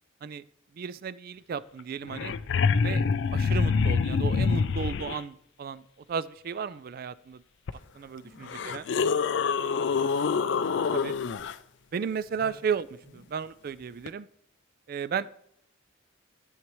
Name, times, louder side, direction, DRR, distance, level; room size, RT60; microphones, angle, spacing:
voice 1, 0.8-2.4 2.8-3.1 3.3-5.8 6.1-7.4 7.9-8.8 10.9-11.2 11.9-12.9 13.3-14.3 14.9-15.3, right 6 dB, 45° right, 17 dB, 0.3 m, -34 dB
sound 1, 1.8-5.2 7.7-7.8 8.4-11.5 14.1-14.2, left 5 dB, 55° left, 0.4 m, -26 dB
voice 2, 7.7-9.1 9.4-11.1 12.3-12.5 13.0-13.2, right 1 dB, 65° right, -3 dB, 4.4 m, -54 dB
12.5 x 7.3 x 3.1 m, 0.71 s
head